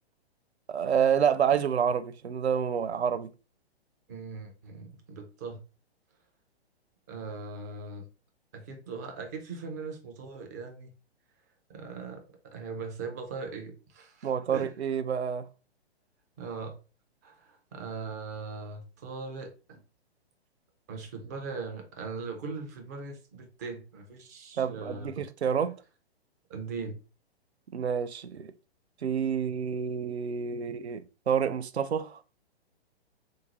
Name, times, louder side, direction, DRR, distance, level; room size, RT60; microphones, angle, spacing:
voice 1, 0.7-3.3 14.2-15.5 24.6-25.7 27.7-28.5 29.0-32.2, right 7 dB, 80° right, 0.5 m, -28 dB
voice 2, 4.1-5.6 7.1-8.1 8.5-10.9 11.7-14.7 16.4-16.8 17.2-19.8 20.9-25.3 26.5-27.0, right 4 dB, 15° right, 0.4 m, -40 dB
3.6 x 2.6 x 2.9 m
figure-of-eight pair, 120°, 32 cm